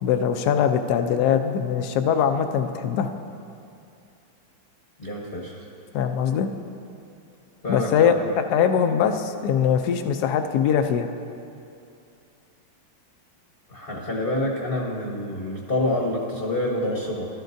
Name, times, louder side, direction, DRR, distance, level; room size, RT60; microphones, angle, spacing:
voice 1, 0.0-3.1 5.9-6.5 7.7-11.1, left 8 dB, 70° left, 7 dB, 1.0 m, -22 dB
voice 2, 5.0-5.7 7.6-8.2 13.7-17.3, left 1 dB, 35° left, -4 dB, 1.0 m, -27 dB
15.0 x 12.5 x 2.6 m, 2.6 s
omnidirectional pair, 2.2 m